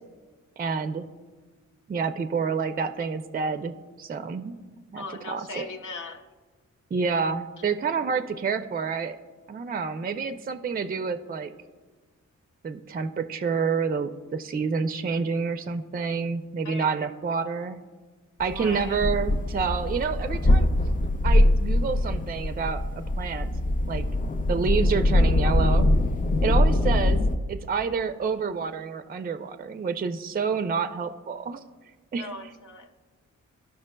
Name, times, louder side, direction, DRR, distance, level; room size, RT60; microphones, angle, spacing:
voice 1, 0.6-1.1 1.9-4.5 4.9-5.7 6.9-9.2 9.5-11.5 12.6-17.8 18.4-20.7 21.2-23.5 23.9-24.1 24.5-25.9 26.4-31.6 32.1-32.3, right 5 dB, 30° right, 10 dB, 0.4 m, -28 dB
voice 2, 5.0-6.3 7.6-8.2 16.6-17.1 18.5-19.0 32.1-32.9, left 2 dB, 80° left, 4 dB, 0.8 m, -39 dB
sound 1, 18.4-27.4, left 1 dB, 25° left, 0.4 m, -23 dB
14.5 x 5.6 x 2.2 m, 1.4 s
cardioid pair, 70°, 30 cm